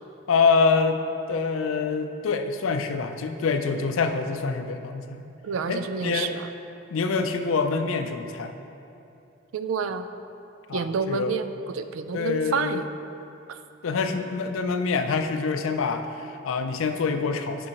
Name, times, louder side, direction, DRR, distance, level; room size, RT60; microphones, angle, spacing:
voice 1, 0.3-1.0 1.3-5.2 5.7-6.3 6.9-8.5 10.7-11.4 12.1-12.9 13.8-17.7, left 4 dB, 90° left, 7 dB, 0.4 m, -25 dB
voice 2, 5.4-6.5 9.5-10.1 10.7-12.8 13.5-13.6, right 5 dB, 85° right, 10 dB, 0.3 m, -29 dB
9.5 x 5.2 x 2.9 m, 2.7 s
head